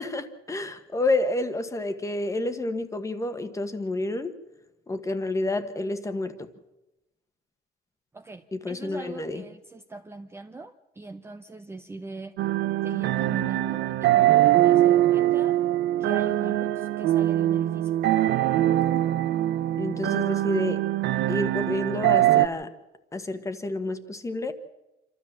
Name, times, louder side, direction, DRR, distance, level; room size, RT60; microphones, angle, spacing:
voice 1, 0.0-4.3 4.9-6.5 8.5-9.4 19.8-20.8 21.3-22.7 23.1-24.5, left 2 dB, 15° left, 9 dB, 1.4 m, -29 dB
voice 2, 8.1-12.4 12.8-15.6 16.0-18.0, right 3 dB, 15° right, 6 dB, 0.7 m, -41 dB
sound 1, 12.4-22.5, right 14 dB, 75° right, 0.7 m, -22 dB
27.5 x 13.5 x 7.4 m, 1.0 s
cardioid pair, 145°, 18 cm